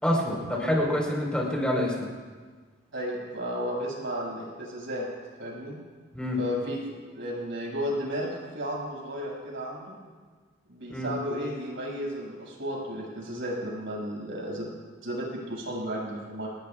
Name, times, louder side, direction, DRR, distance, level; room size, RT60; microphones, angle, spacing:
voice 1, 0.0-2.1 6.1-6.4 10.9-11.1, left 1 dB, 5° left, -2 dB, 4.4 m, -27 dB
voice 2, 2.9-5.0 5.4-5.8 6.4-6.8 7.1-10.0 10.7-14.6 15.0-16.5, equal, 75° right, -4 dB, 6.5 m, -33 dB
27.0 x 19.5 x 2.4 m, 1.5 s
head